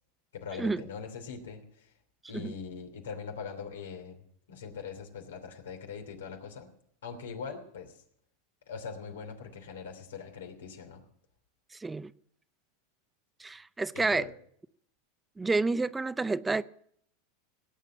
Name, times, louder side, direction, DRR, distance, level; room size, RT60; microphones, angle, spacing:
voice 1, 0.3-1.9 2.3-6.7 7.0-8.0 8.7-11.0 13.9-14.3, left 6 dB, 90° left, 2.9 m, -42 dB
voice 2, 11.7-12.1 13.4-14.2 15.4-16.6, right 3 dB, 10° right, 0.5 m, -29 dB
18.5 x 8.4 x 7.3 m
hypercardioid pair, 110°, 0 cm